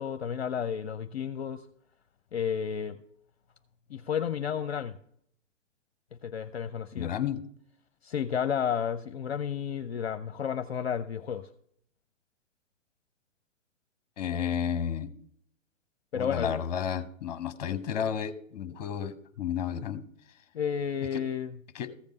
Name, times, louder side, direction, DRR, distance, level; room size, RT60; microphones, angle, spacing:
voice 1, 0.0-1.6 2.3-3.0 3.9-5.0 6.2-7.1 8.0-11.5 16.1-16.6 20.5-21.6, left 8 dB, 55° left, 0.6 m, -32 dB
voice 2, 7.0-7.4 14.2-15.1 16.1-20.0 21.1-21.2 21.7-21.9, left 8 dB, 35° left, 1.0 m, -32 dB
14.5 x 5.2 x 6.3 m
figure-of-eight pair, 120°, 39 cm